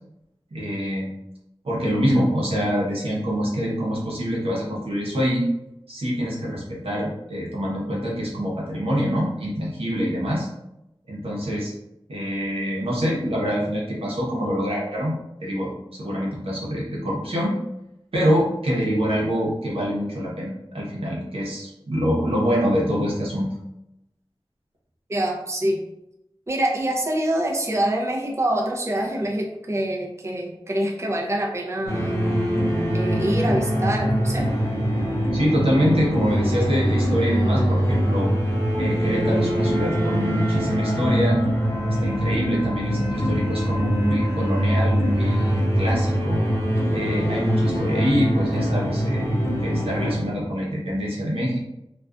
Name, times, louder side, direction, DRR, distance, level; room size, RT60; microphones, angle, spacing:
voice 1, 0.5-1.1 1.6-5.4 5.9-10.5 11.1-11.7 12.1-15.1 15.4-17.6 18.1-23.5 35.3-38.3 38.8-41.4 41.9-46.4 46.9-51.6, equal, 90° right, -4 dB, 0.7 m, -25 dB
voice 2, 25.1-25.8 26.5-32.2 32.9-34.5, right 1 dB, 30° right, -1 dB, 0.5 m, -25 dB
sound 1, 31.9-50.2, equal, 30° left, 0.7 m, -23 dB
2.4 x 2.2 x 2.3 m, 0.86 s
wide cardioid pair, 55°, 10 cm